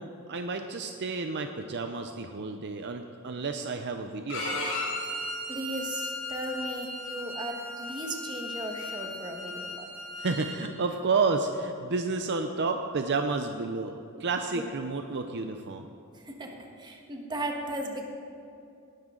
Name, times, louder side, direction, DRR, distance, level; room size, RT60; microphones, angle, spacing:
voice 1, 0.0-4.8 10.2-15.9, right 4 dB, 55° right, 6 dB, 0.6 m, -31 dB
Bowed string instrument, 4.3-10.6, left 1 dB, 80° left, 4.0 m, -36 dB
voice 2, 5.5-9.9 14.5-14.6 16.1-18.1, right 1 dB, 20° right, 2 dB, 1.5 m, -36 dB
18.0 x 12.0 x 3.8 m, 2.7 s
head